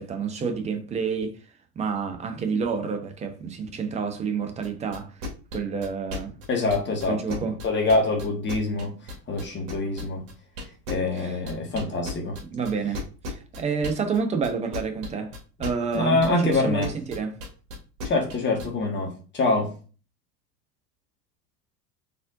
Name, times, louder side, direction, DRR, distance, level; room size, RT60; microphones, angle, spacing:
voice 1, 0.0-1.4 1.8-5.1 5.5-6.3 7.1-7.6 11.1-11.4 12.5-13.0 13.2-15.3 15.6-17.4, right 5 dB, 15° right, 0.5 m, -29 dB
sound 1, 4.6-18.7, left 2 dB, 45° right, 1.6 m, -35 dB
voice 2, 6.5-7.4 7.6-8.9 9.3-10.2 10.9-12.4 15.9-16.9 18.0-19.7, left 2 dB, 25° left, 1.3 m, -25 dB
4.2 x 3.5 x 2.4 m
figure-of-eight pair, 80°, 48 cm